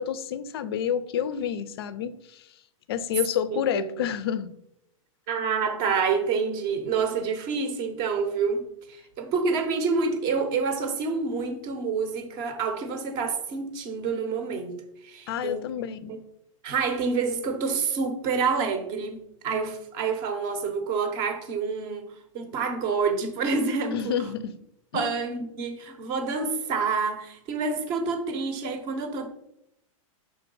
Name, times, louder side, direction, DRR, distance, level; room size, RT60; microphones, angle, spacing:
voice 1, 0.0-2.5 2.9-4.5 15.3-16.2 23.9-24.5 24.9-25.1, left 9 dB, 45° left, 14 dB, 0.5 m, -29 dB
voice 2, 3.5-3.9 5.3-14.8 15.0-15.7 16.1-16.2 16.6-22.1 22.3-24.2 24.9-29.3, right 5 dB, 25° right, 7 dB, 0.8 m, -28 dB
5.7 x 3.8 x 5.4 m, 0.78 s
supercardioid pair, 175°, 18 cm